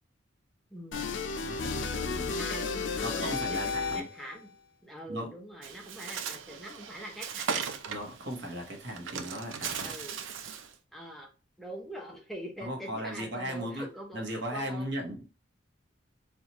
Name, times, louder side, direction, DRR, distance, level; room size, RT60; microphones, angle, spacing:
voice 1, 0.7-1.1 2.4-4.5 4.8-7.7 9.0-9.1 9.8-10.2 10.9-11.3 11.6-14.9, equal, ahead, 0.6 m, -44 dB
sound 1, 0.9-4.3, left 4 dB, 75° left, 0.5 m, -33 dB
voice 2, 1.4-2.4 3.0-4.1 5.1-5.3 7.9-9.9 12.6-13.9 14.1-15.3, equal, 60° right, 1.0 m, -37 dB
Bird, 5.6-10.7, right 6 dB, 80° right, 0.5 m, -38 dB
4.3 x 2.4 x 2.9 m
head